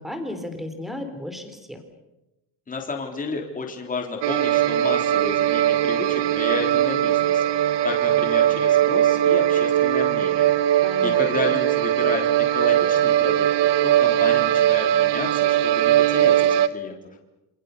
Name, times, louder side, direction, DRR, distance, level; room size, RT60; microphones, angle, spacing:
voice 1, 0.0-1.8 10.8-11.2, left 1 dB, ahead, 7 dB, 3.4 m, -34 dB
voice 2, 2.7-17.0, left 4 dB, 20° left, 2 dB, 3.7 m, -32 dB
sound 1, 4.2-16.7, right 12 dB, 75° right, 1.3 m, -20 dB
28.0 x 26.0 x 6.8 m, 0.97 s
cardioid pair, 175°, 42 cm